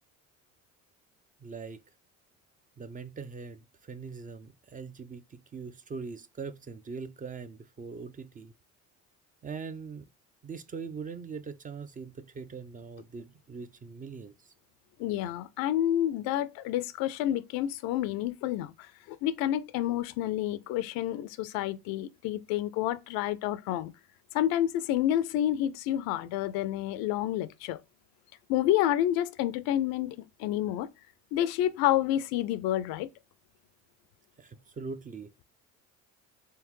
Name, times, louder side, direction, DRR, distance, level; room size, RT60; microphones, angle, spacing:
voice 1, 1.4-1.8 2.8-8.5 9.4-10.1 10.4-14.5 34.4-35.3, right 5 dB, 25° right, 0.4 m, -41 dB
voice 2, 15.0-23.9 24.3-27.8 28.5-30.9 31.3-33.1, left 12 dB, 70° left, 0.5 m, -29 dB
3.4 x 3.1 x 3.1 m
supercardioid pair, 80°, 37 cm